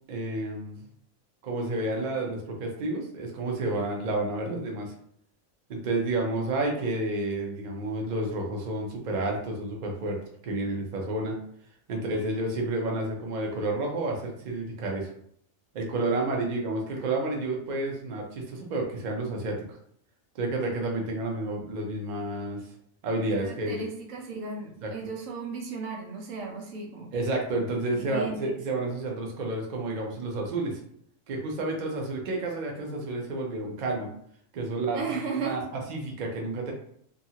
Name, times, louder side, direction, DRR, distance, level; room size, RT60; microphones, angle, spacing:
voice 1, 0.1-0.7 1.4-4.9 5.7-10.2 10.4-11.3 11.9-15.1 15.7-19.6 20.3-22.6 23.0-23.8 24.8-24.9 27.1-30.8 31.3-34.1 34.5-35.0 35.4-36.7, right 2 dB, 50° right, 0 dB, 0.6 m, -30 dB
voice 2, 11.9-12.2 23.1-27.2 27.9-28.6 34.9-35.8, right 4 dB, 90° right, 1 dB, 1.1 m, -36 dB
2.5 x 2.4 x 2.7 m, 0.66 s
omnidirectional pair, 1.3 m